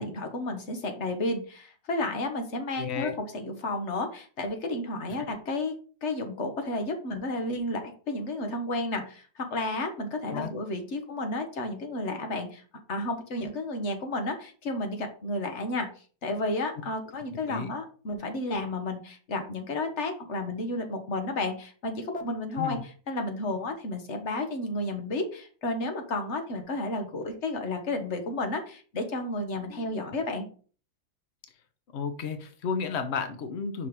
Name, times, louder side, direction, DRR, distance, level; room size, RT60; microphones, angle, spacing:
voice 1, 0.0-5.7 6.0-12.6 12.9-15.9 16.2-22.8 23.1-30.5, left 2 dB, 40° left, 5 dB, 1.3 m, -32 dB
voice 2, 2.8-3.1 10.3-10.5 17.5-17.7 22.6-22.8 29.7-30.2 31.9-33.9, left 6 dB, 85° left, 8 dB, 0.5 m, -33 dB
5.5 x 5.0 x 4.7 m, 0.41 s
omnidirectional pair, 2.2 m